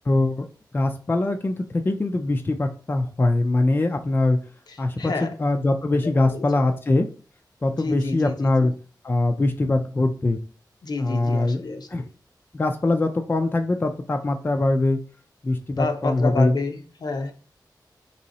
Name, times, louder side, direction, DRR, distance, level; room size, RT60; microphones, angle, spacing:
voice 1, 0.1-0.5 0.7-4.4 4.8-7.1 7.6-8.7 9.0-10.4 11.0-11.6 11.9-12.1 12.5-15.0 15.4-16.5, left 2 dB, 30° left, 0.3 m, -22 dB
voice 2, 5.0-5.3 6.2-6.5 7.8-8.3 10.8-11.9 15.8-17.3, left 3 dB, 70° left, 0.6 m, -28 dB
3.0 x 2.7 x 4.0 m
wide cardioid pair, 110°, 7 cm